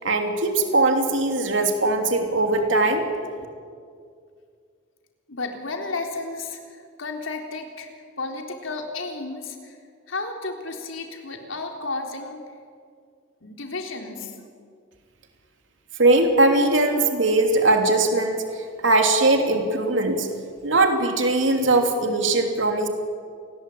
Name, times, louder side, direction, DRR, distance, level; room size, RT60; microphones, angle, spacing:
voice 1, 0.0-3.1 16.0-20.3 20.6-22.9, right 2 dB, 70° right, 4 dB, 3.0 m, -20 dB
voice 2, 5.3-9.8 10.1-12.4 13.4-14.3, left 3 dB, 85° left, 3 dB, 3.8 m, -33 dB
28.5 x 21.0 x 8.6 m, 2.2 s
head